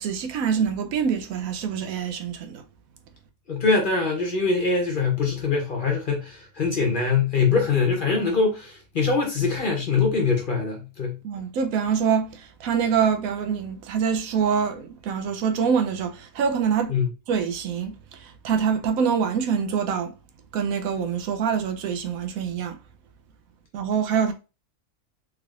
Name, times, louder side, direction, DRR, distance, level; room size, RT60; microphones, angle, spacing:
voice 1, 0.0-2.6 11.2-17.0 17.3-20.1 20.5-22.8 23.7-24.3, right 7 dB, 80° right, 1.0 m, -25 dB
voice 2, 3.5-11.2 16.9-17.1, left 4 dB, 45° left, 0.8 m, -23 dB
3.5 x 3.3 x 2.4 m
omnidirectional pair, 1.5 m